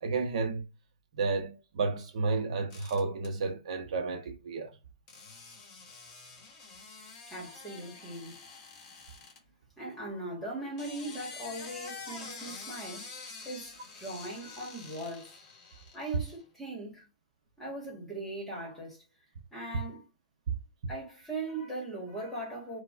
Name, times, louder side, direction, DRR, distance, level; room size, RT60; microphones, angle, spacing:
voice 1, 0.0-0.6 1.1-4.8 12.1-12.4, right 4 dB, 55° right, 0.7 m, -32 dB
sound 1, 2.7-3.3 5.1-9.4 10.6-16.4, left 4 dB, 25° left, 0.8 m, -47 dB
voice 2, 7.3-8.4 9.8-15.3 15.9-17.1 17.6-19.0 19.5-20.1 20.9-22.8, right 2 dB, 5° left, 1.2 m, -39 dB
4.5 x 2.1 x 2.4 m
hypercardioid pair, 175°, 4 cm